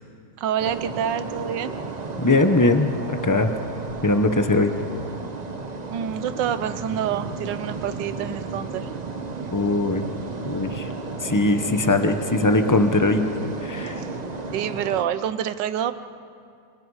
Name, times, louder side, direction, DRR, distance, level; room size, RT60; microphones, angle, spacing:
voice 1, 0.4-1.8 5.9-8.9 14.0-14.1 14.5-15.9, right 9 dB, 75° right, 13 dB, 1.4 m, -27 dB
sound 1, 0.6-15.0, right 3 dB, 30° right, 0.8 m, -33 dB
voice 2, 2.2-3.5 4.0-4.7 9.5-10.0 10.5-10.9 11.2-13.2 13.6-14.0, left 2 dB, 20° left, 7 dB, 0.4 m, -20 dB
28.5 x 24.5 x 4.8 m, 2.3 s
omnidirectional pair, 2.0 m